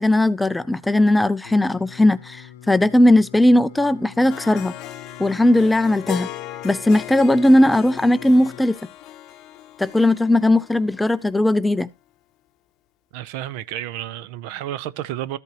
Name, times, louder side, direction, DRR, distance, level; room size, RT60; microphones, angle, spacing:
voice 1, 0.0-4.7 5.2-6.3 6.6-8.8 9.8-11.9, left 1 dB, 5° left, 0.4 m, -17 dB
Singing, 1.4-8.7, left 11 dB, 70° left, 0.8 m, -44 dB
Harp, 4.3-11.5, left 13 dB, 40° left, 0.8 m, -37 dB
voice 2, 13.1-15.4, right 12 dB, 55° right, 0.6 m, -31 dB
13.5 x 5.5 x 2.9 m
hypercardioid pair, 125°, 0 cm